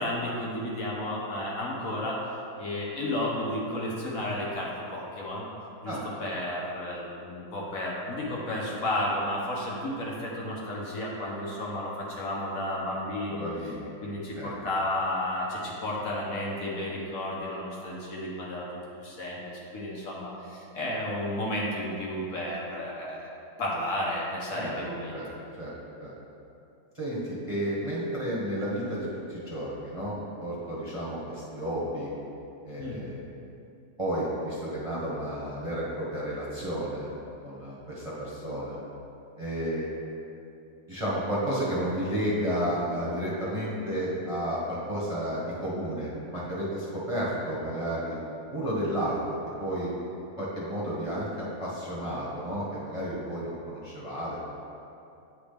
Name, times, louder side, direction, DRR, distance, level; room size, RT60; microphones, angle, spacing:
voice 1, 0.0-2.2 2.6-5.4 5.8-13.5 14.0-18.6 19.0-19.4 19.7-23.3 23.6-25.2 32.8-33.0, left 1 dB, 60° left, -4 dB, 1.3 m, -32 dB
voice 2, 13.3-13.9 14.4-14.6 24.5-24.8 25.1-25.3 25.6-25.7 26.0-26.1 26.9-32.1 32.6-33.2 34.0-37.1 37.4-38.8 39.4-39.9 40.9-48.1 48.5-49.2 49.6-49.9 50.4-54.4, equal, 25° right, -9 dB, 1.0 m, -32 dB
8.7 x 4.1 x 3.4 m, 2.7 s
omnidirectional pair, 1.7 m